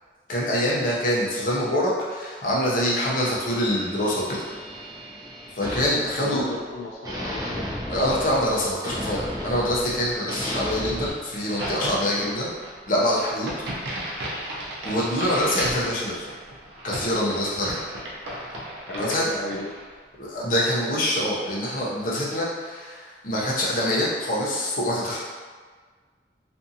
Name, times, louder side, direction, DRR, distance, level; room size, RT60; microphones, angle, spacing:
voice 1, 0.3-4.4 5.6-6.4 7.9-12.5 12.9-13.5 14.8-16.3 16.8-17.8 19.0-19.2 20.2-25.2, left 1 dB, 50° left, -5 dB, 0.6 m, -25 dB
sound 1, 3.1-6.7 7.0-11.1, equal, 20° right, 0.5 m, -34 dB
voice 2, 6.2-7.7 12.1-12.3 18.9-19.7, left 2 dB, 90° left, -2 dB, 0.3 m, -34 dB
Crack, 11.3-19.9, right 1 dB, 85° right, 0.6 m, -35 dB
2.6 x 2.5 x 2.6 m, 1.5 s
head